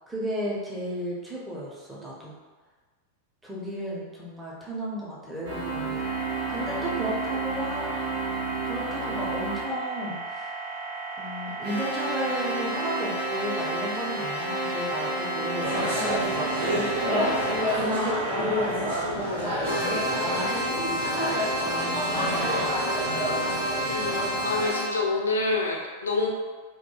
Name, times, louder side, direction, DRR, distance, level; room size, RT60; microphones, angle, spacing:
voice 1, 0.1-2.3 3.4-6.0 6.5-7.9 8.6-10.5 11.2-22.7, equal, 10° right, -5 dB, 0.6 m, -34 dB
sound 1, 5.4-9.7 11.6-17.7 19.6-24.9, right 1 dB, 55° right, 0.6 m, -30 dB
sound 2, 6.0-19.0, right 3 dB, 40° right, 1.3 m, -36 dB
sound 3, 15.6-24.7, equal, 80° right, 1.1 m, -29 dB
voice 2, 23.8-26.3, left 3 dB, 70° left, 0 dB, 0.4 m, -27 dB
2.8 x 2.2 x 2.2 m, 1.4 s
figure-of-eight pair, 90°, 0 cm